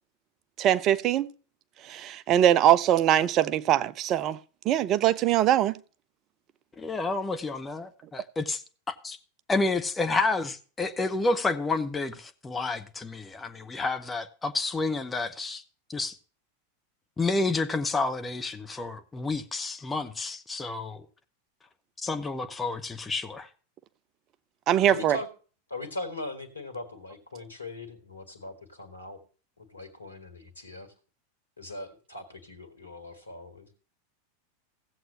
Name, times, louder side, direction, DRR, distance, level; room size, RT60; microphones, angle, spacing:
voice 1, 0.6-1.3 1.9-4.4 4.7-5.8 24.7-25.2, right 11 dB, 35° right, 0.5 m, -22 dB
voice 2, 6.8-8.6 9.0-9.2 9.5-15.6 15.9-16.2 17.2-21.0 22.0-23.5, left 3 dB, 15° left, 1.0 m, -30 dB
voice 3, 24.9-25.3 25.7-29.2 29.6-30.9 31.6-33.7, left 2 dB, 80° left, 1.8 m, -40 dB
16.5 x 7.8 x 2.8 m
figure-of-eight pair, 90°, 0 cm